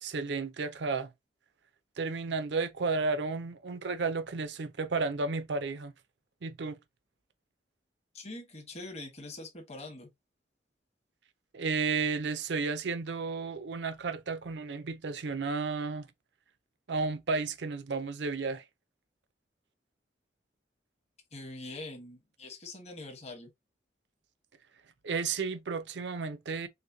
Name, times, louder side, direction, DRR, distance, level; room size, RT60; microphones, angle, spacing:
voice 1, 0.0-1.1 2.0-5.9 6.4-6.8 11.5-16.1 16.9-18.6 25.0-26.7, right 4 dB, 70° right, 0.5 m, -32 dB
voice 2, 8.1-10.1 21.3-23.5, left 2 dB, 35° left, 1.2 m, -44 dB
6.4 x 2.2 x 2.7 m
head